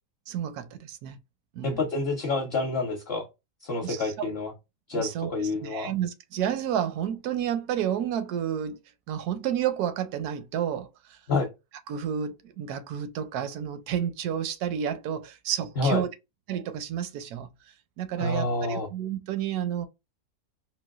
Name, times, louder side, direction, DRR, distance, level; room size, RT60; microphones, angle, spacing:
voice 1, 0.3-1.2 1.5-1.8 3.8-4.3 4.9-5.3 5.6-8.8 9.1-11.2 11.9-16.1 16.5-17.5 18.0-19.9, right 9 dB, 85° right, 1.1 m, -30 dB
voice 2, 1.6-3.3 3.6-4.5 4.9-5.9 11.3-11.5 15.8-16.0 18.2-18.9, left 3 dB, 50° left, 0.9 m, -28 dB
3.9 x 2.2 x 2.3 m
omnidirectional pair, 1.6 m